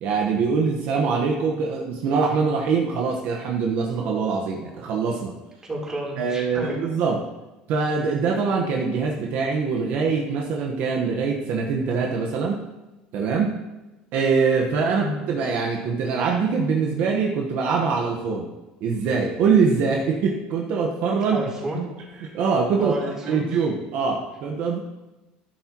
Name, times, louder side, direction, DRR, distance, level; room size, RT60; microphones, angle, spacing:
voice 1, 0.0-5.3 6.2-7.2 7.7-12.6 13.1-13.5 14.1-18.5 18.8-21.4 22.2-22.9 23.3-24.8, right 5 dB, 65° right, 0 dB, 1.3 m, -23 dB
voice 2, 5.6-6.8 14.9-15.1 21.3-21.9 22.8-23.4, right 1 dB, 20° right, -4 dB, 3.8 m, -30 dB
12.0 x 11.0 x 3.1 m, 1.1 s
cardioid pair, 125°, 3 cm